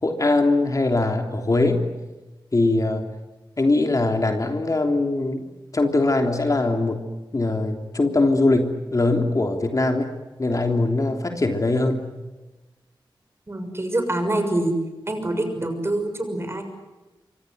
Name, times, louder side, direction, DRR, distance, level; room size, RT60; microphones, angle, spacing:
voice 1, 0.0-1.9 2.5-3.1 3.6-5.4 5.7-7.0 7.3-10.1 10.4-12.1, left 2 dB, 40° left, 5 dB, 3.2 m, -21 dB
voice 2, 13.5-14.7 15.1-16.6, right 1 dB, 30° right, 6 dB, 6.5 m, -25 dB
28.5 x 25.0 x 8.0 m, 1.2 s
wide cardioid pair, 95°, 9 cm